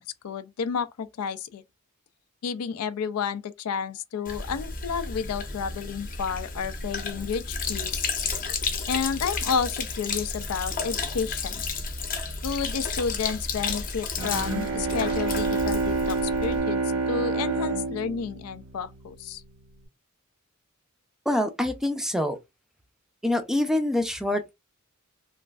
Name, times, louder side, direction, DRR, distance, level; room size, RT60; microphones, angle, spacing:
voice 1, 0.0-1.6 2.4-7.9 8.9-11.6 12.4-16.8 17.1-19.4, left 6 dB, 90° left, 0.4 m, -31 dB
Sink (filling or washing), 4.2-16.6, left 4 dB, 40° left, 0.7 m, -32 dB
Bowed string instrument, 14.2-19.1, right 3 dB, 70° right, 0.7 m, -28 dB
voice 2, 21.3-22.4 23.2-24.5, left 1 dB, ahead, 0.4 m, -25 dB
3.0 x 2.5 x 2.3 m
head